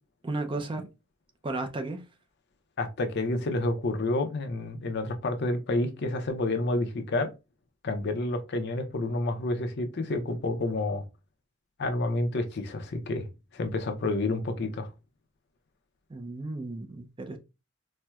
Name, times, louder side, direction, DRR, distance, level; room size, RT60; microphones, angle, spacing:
voice 1, 0.2-0.9 1.4-2.0 16.1-17.4, right 2 dB, 25° right, 0.4 m, -34 dB
voice 2, 2.8-7.3 7.8-11.0 11.8-13.3 13.5-14.9, left 2 dB, 55° left, 0.6 m, -29 dB
4.3 x 2.1 x 2.3 m
head